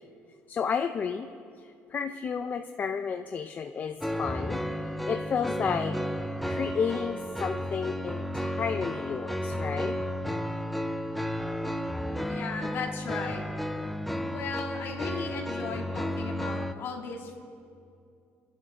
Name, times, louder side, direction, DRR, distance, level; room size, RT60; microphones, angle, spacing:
voice 1, 0.5-1.3 1.9-4.6 5.1-6.0 6.4-10.0, left 6 dB, 40° left, 6 dB, 0.6 m, -32 dB
sound 1, 4.0-16.7, equal, ahead, 0.6 m, -33 dB
voice 2, 12.3-13.4 14.3-17.4, left 5 dB, 60° left, 1 dB, 2.4 m, -36 dB
29.5 x 11.0 x 3.8 m, 2.5 s
cardioid pair, 115°, 5 cm